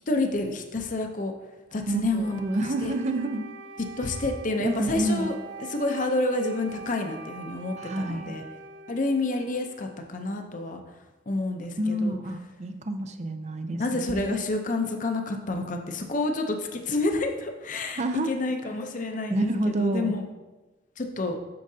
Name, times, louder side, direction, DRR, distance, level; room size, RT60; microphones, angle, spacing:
voice 1, 0.1-1.3 1.7-2.4 2.8-2.9 4.0-5.3 5.6-8.4 8.9-10.8 11.3-12.2 13.8-20.2 21.0-21.4, left 2 dB, 45° left, 5 dB, 0.6 m, -29 dB
voice 2, 1.9-3.5 4.6-5.3 7.8-8.3 11.8-14.4 18.0-18.3 19.3-20.2, right 1 dB, 40° right, 8 dB, 0.5 m, -28 dB
Wind instrument woodwind instrument, 2.2-9.9, right 3 dB, 85° right, 0.6 m, -44 dB
8.5 x 6.4 x 2.7 m, 1.1 s
head